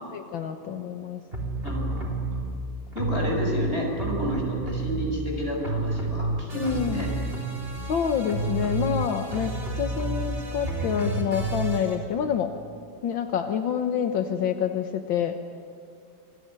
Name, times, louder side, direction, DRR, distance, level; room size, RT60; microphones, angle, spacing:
voice 1, 0.1-1.2 6.5-7.1 7.9-12.5 13.0-15.3, left 8 dB, 80° left, 6 dB, 1.9 m, -27 dB
sound 1, 1.3-2.4 2.9-5.3 5.6-12.0, right 2 dB, 30° right, 4.1 m, -30 dB
voice 2, 1.6-2.3 2.9-7.1, equal, 30° left, 0 dB, 6.7 m, -30 dB
27.5 x 21.0 x 9.8 m, 2.4 s
omnidirectional pair, 2.1 m